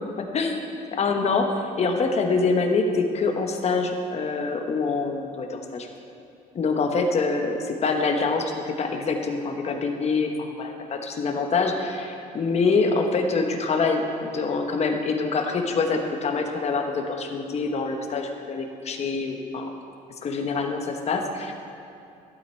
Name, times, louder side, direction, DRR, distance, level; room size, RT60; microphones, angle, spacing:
voice 1, 1.0-1.4 1.8-5.9 6.5-19.7 20.2-21.5, left 4 dB, 40° left, 3 dB, 1.2 m, -25 dB
12.0 x 8.9 x 4.5 m, 2.6 s
cardioid pair, 110°, 17 cm